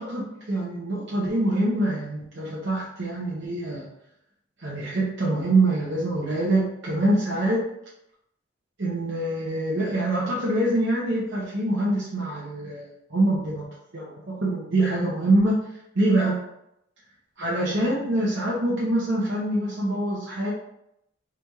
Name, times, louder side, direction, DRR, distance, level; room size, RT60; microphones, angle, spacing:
voice 1, 0.0-3.8 4.6-7.6 8.8-13.7 13.9-15.6 15.9-16.4 17.4-20.5, right 1 dB, 55° right, -6 dB, 0.8 m, -25 dB
3.3 x 2.9 x 3.5 m, 0.79 s
head